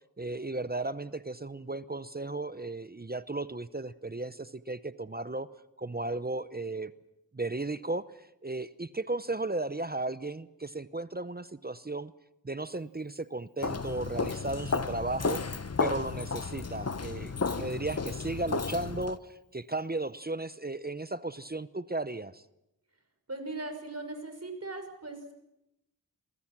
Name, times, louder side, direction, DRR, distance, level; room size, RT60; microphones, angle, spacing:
voice 1, 0.2-5.5 5.8-6.9 7.3-12.1 12.4-15.4 15.8-22.4, right 2 dB, 25° right, 14 dB, 0.8 m, -35 dB
Walk footsteps, 13.6-19.2, left 4 dB, 45° left, 0.9 m, -33 dB
voice 2, 23.3-25.4, right 2 dB, 45° right, 6 dB, 5.7 m, -39 dB
28.0 x 23.5 x 6.1 m, 0.86 s
wide cardioid pair, 50°, 36 cm